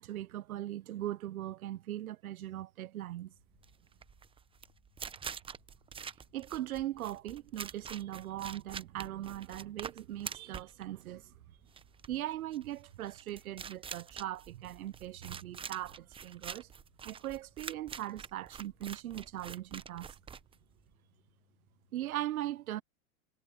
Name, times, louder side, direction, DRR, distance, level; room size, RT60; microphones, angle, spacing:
voice 1, 0.0-3.3 6.3-11.3 12.1-16.7 17.0-20.1 21.9-22.8, right 13 dB, 90° right, 0.8 m, -39 dB
sound 1, 3.2-22.2, left 13 dB, 75° left, 4.5 m, -72 dB
sound 2, 3.5-20.9, right 6 dB, 15° right, 0.8 m, -46 dB
hypercardioid pair, 125°, 42 cm